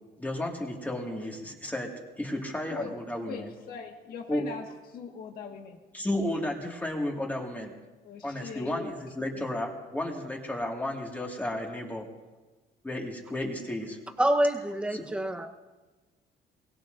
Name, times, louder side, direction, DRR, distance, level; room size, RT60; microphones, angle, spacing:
voice 1, 0.2-1.9 2.2-3.5 4.3-4.4 5.9-7.7 8.2-12.1 12.8-14.0 14.9-15.1, left 1 dB, 10° left, -1 dB, 2.0 m, -33 dB
voice 2, 3.2-5.8 6.2-6.3 8.0-9.4, left 6 dB, 60° left, 1 dB, 1.7 m, -41 dB
voice 3, 14.2-15.5, right 1 dB, 5° right, 4 dB, 1.0 m, -26 dB
23.0 x 21.5 x 2.6 m, 1.2 s
cardioid pair, 155°, 17 cm